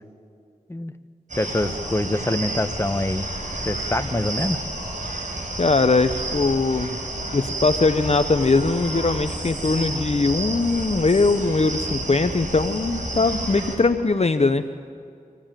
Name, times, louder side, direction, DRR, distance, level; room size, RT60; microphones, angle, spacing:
sound 1, 1.3-13.8, right 1 dB, 55° right, 5.6 m, -30 dB
voice 1, 1.4-3.3 3.7-4.7, left 1 dB, 15° left, 9 dB, 1.1 m, -25 dB
voice 2, 5.6-7.0 7.3-14.6, left 3 dB, 45° left, 9 dB, 0.8 m, -21 dB
25.0 x 16.0 x 9.1 m, 2.3 s
cardioid pair, 40°, 15 cm